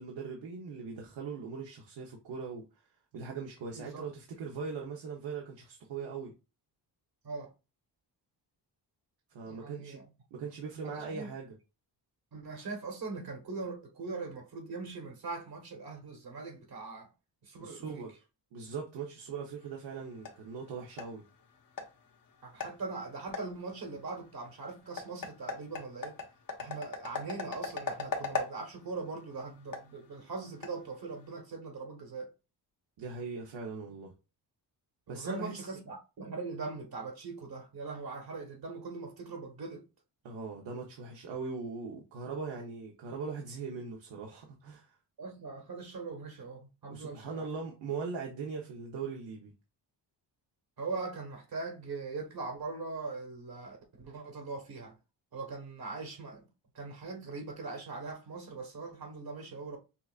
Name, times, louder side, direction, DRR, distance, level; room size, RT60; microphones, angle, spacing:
voice 1, 0.0-2.6 3.1-6.3 9.3-10.0 10.3-11.5 17.6-18.1 18.5-21.2 33.0-34.1 35.1-35.6 40.2-44.9 46.9-49.5, right 5 dB, 85° right, 1.1 m, -40 dB
voice 2, 3.7-4.1 7.2-7.5 9.4-10.0 10.8-11.3 12.3-17.1 17.4-18.0 22.4-26.2 26.6-32.3 35.1-39.8 45.2-47.5 50.8-55.0 55.3-56.5 56.7-59.8, right 4 dB, 55° right, 1.4 m, -41 dB
sound 1, 19.6-31.4, left 4 dB, 50° left, 1.2 m, -42 dB
5.7 x 2.5 x 2.5 m
cardioid pair, 85°, 43 cm